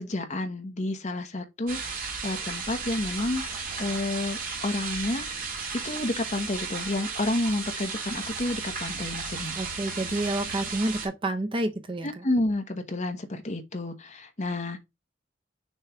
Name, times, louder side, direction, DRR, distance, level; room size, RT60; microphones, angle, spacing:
voice 1, 0.0-3.4 3.8-5.3 5.7-9.5 12.0-14.8, left 2 dB, 40° left, 1.1 m, -30 dB
sound 1, 1.7-11.1, right 5 dB, 45° right, 1.9 m, -34 dB
voice 2, 9.6-12.2, right 1 dB, 25° right, 0.7 m, -29 dB
6.5 x 3.1 x 4.6 m
head